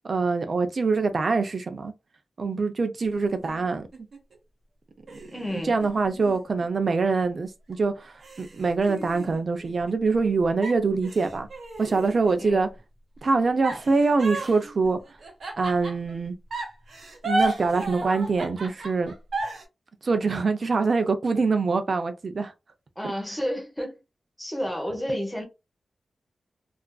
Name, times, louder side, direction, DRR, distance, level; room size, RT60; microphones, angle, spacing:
voice 1, 0.0-1.9 2.4-3.9 5.1-5.2 5.6-11.5 11.8-12.7 13.2-15.0 15.6-16.4 17.2-19.1 20.0-22.5, right 4 dB, 45° right, 0.4 m, -24 dB
sound 1, 3.0-4.4 5.1-7.3 7.7-7.8 8.2-10.3 10.6-12.6 13.6-16.1 16.5-19.6, right 2 dB, 65° right, 0.8 m, -34 dB
voice 2, 5.3-5.8 12.4-12.7 23.0-24.0 24.4-25.4, equal, 5° left, 0.7 m, -31 dB
2.4 x 2.3 x 2.2 m
wide cardioid pair, 170°, 0 cm